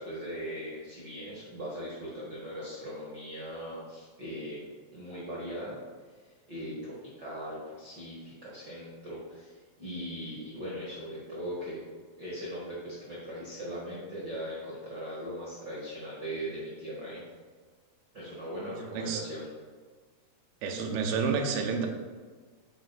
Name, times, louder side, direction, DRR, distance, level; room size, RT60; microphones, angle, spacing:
voice 1, 0.0-4.7 4.9-5.8 6.2-11.8 12.2-17.2 18.1-19.5, equal, 65° right, -7 dB, 1.0 m, -39 dB
voice 2, 20.6-21.9, right 5 dB, 85° right, 3 dB, 2.6 m, -29 dB
7.8 x 4.5 x 4.0 m, 1.5 s
omnidirectional pair, 4.4 m